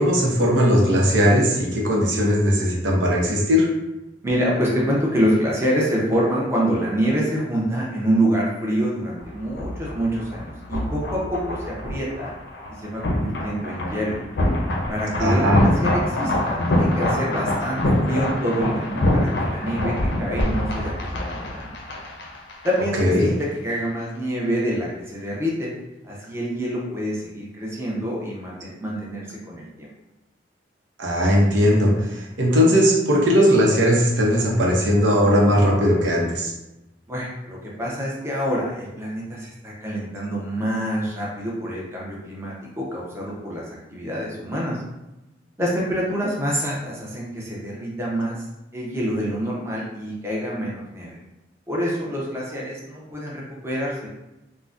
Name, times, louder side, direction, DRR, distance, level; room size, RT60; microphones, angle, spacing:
voice 1, 0.0-3.7 15.2-15.6 22.9-23.3 31.0-36.5, equal, 90° right, -2 dB, 0.7 m, -18 dB
voice 2, 4.2-12.3 12.8-14.2 14.9-21.7 22.6-23.3 23.6-25.7 26.0-29.9 37.1-43.6 43.9-44.8 45.6-48.4 48.7-51.2 51.7-54.1, equal, 15° right, -4 dB, 0.6 m, -26 dB
sound 1, 9.2-23.0 23.2-23.4, left 1 dB, 65° left, 0.5 m, -25 dB
3.7 x 2.1 x 2.4 m, 0.97 s
head